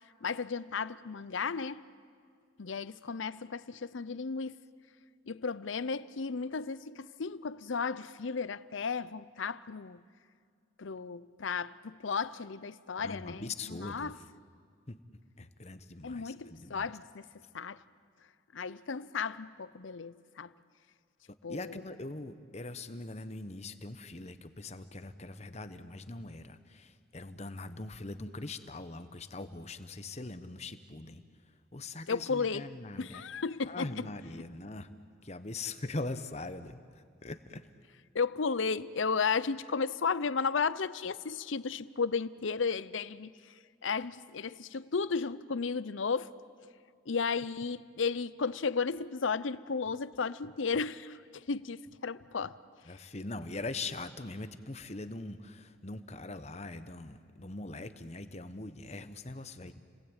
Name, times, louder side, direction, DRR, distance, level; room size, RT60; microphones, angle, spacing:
voice 1, 0.2-1.8 2.6-4.6 5.3-10.0 10.8-14.2 16.0-17.3 17.5-17.8 18.5-20.5 21.4-21.8 32.1-32.6 33.0-34.1 38.1-43.5 43.8-46.3 47.1-52.6, left 5 dB, 75° left, 0.7 m, -34 dB
voice 2, 13.0-14.1 14.9-15.0 15.4-16.9 21.5-31.2 31.7-33.2 33.6-34.9 35.2-37.7 52.9-59.8, left 2 dB, 35° left, 1.0 m, -42 dB
30.0 x 19.5 x 8.9 m
head